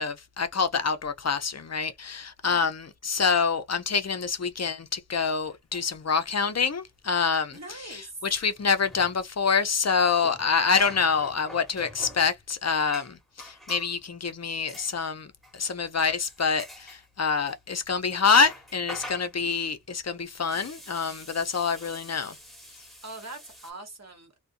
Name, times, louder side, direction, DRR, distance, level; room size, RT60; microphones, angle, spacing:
voice 1, 0.0-7.6 8.3-15.3 15.5-22.4, left 5 dB, 50° left, 0.5 m, -26 dB
sound 1, 5.7-6.8 7.0-7.2 7.4-13.9 14.7-14.9 15.4-15.7 16.0-17.6 17.9-23.7, equal, ahead, 1.1 m, -46 dB
voice 2, 7.5-8.2 23.0-24.4, right 2 dB, 50° right, 1.1 m, -42 dB
2.4 x 2.2 x 2.5 m
wide cardioid pair, 45°, 35 cm